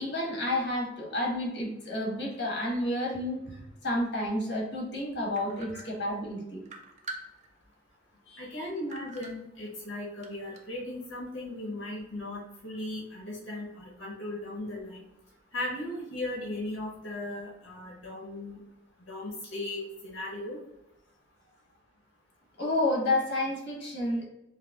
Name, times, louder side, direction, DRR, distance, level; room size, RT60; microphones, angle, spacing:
voice 1, 0.0-6.6 8.3-8.5 22.6-24.2, left 1 dB, 60° left, -3 dB, 1.3 m, -30 dB
sound 1, 5.3-6.3 6.6-7.7 8.2-8.3 8.9-9.9 10.2-10.8, right 2 dB, 40° right, 0.5 m, -44 dB
voice 2, 8.4-15.0 15.5-18.6 19.1-20.6, left 1 dB, 85° left, -4 dB, 0.9 m, -37 dB
4.8 x 2.1 x 2.3 m, 0.91 s
head